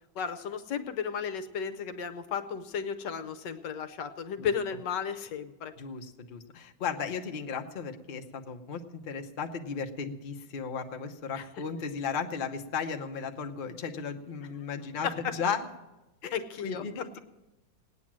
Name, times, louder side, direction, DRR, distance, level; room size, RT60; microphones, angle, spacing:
voice 1, 0.1-5.7 11.3-11.5 15.0-15.4 16.3-17.1, left 7 dB, 70° left, 9 dB, 1.4 m, -34 dB
voice 2, 5.8-15.1 15.3-15.6 16.2-16.3 16.6-17.2, left 6 dB, 40° left, 4 dB, 0.7 m, -35 dB
18.0 x 9.6 x 7.4 m, 1.0 s
omnidirectional pair, 2.1 m